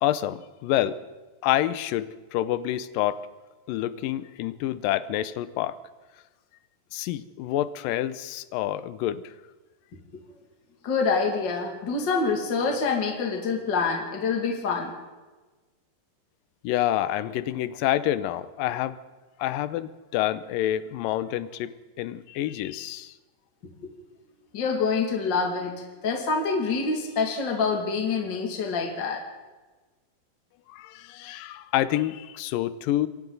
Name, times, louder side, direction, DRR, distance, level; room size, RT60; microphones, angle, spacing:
voice 1, 0.0-1.0 1.4-3.2 3.7-5.8 6.9-9.3 16.6-19.0 19.4-23.1 30.7-33.1, left 13 dB, 75° left, 14 dB, 2.3 m, -28 dB
voice 2, 10.8-14.9 23.8-23.9 24.5-29.2, left 4 dB, 35° left, 1 dB, 2.5 m, -26 dB
27.5 x 23.5 x 4.0 m, 1.2 s
omnidirectional pair, 4.3 m